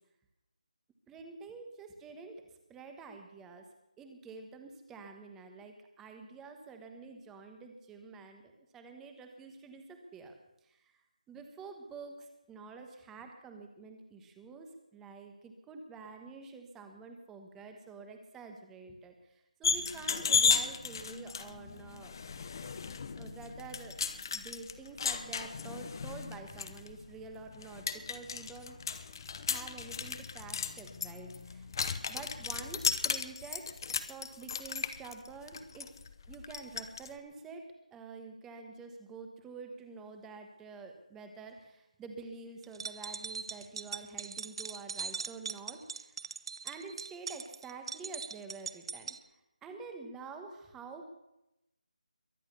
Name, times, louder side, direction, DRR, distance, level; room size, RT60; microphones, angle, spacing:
voice 1, 1.1-2.4 2.7-3.7 4.0-10.3 10.6-10.8 11.3-19.1 19.6-22.1 23.2-24.0 24.3-28.8 29.5-31.7 32.0-33.6 34.1-35.9 36.3-37.6 37.9-46.2 46.6-49.2 49.6-51.1, right 4 dB, 5° right, 5 dB, 1.2 m, -48 dB
sound 1, 19.6-37.1, left 6 dB, 30° left, 0.9 m, -35 dB
sound 2, 42.6-49.2, right 5 dB, 40° right, 0.8 m, -41 dB
22.5 x 8.0 x 6.8 m, 0.89 s
figure-of-eight pair, 170°, 4 cm